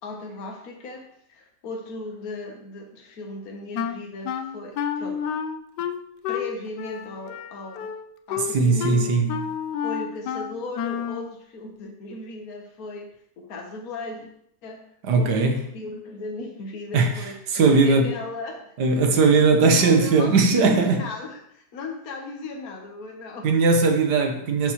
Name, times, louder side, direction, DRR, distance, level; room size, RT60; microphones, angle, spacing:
voice 1, 0.0-5.3 6.3-7.9 8.3-14.3 14.6-14.8 15.1-15.3 15.7-23.5, left 3 dB, 65° left, 1.6 m, -37 dB
Wind instrument woodwind instrument, 3.7-11.3, left 8 dB, 90° left, 1.2 m, -30 dB
voice 2, 8.5-9.3 15.0-15.6 16.9-17.1 17.5-18.1 18.8-21.0 23.4-24.7, right 4 dB, 85° right, 1.7 m, -19 dB
11.5 x 7.1 x 3.1 m
omnidirectional pair, 1.7 m